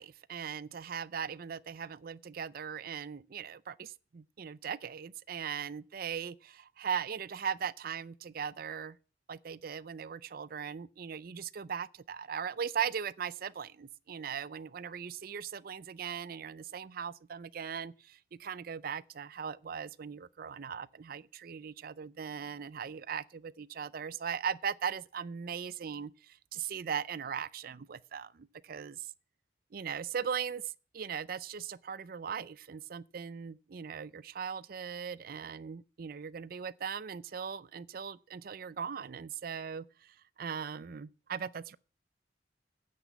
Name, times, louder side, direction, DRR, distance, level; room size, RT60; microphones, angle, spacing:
voice 1, 0.0-9.0 9.3-29.1 29.7-30.6 30.9-41.8, right 7 dB, 55° right, 0.4 m, -39 dB
9.4 x 6.0 x 8.2 m
head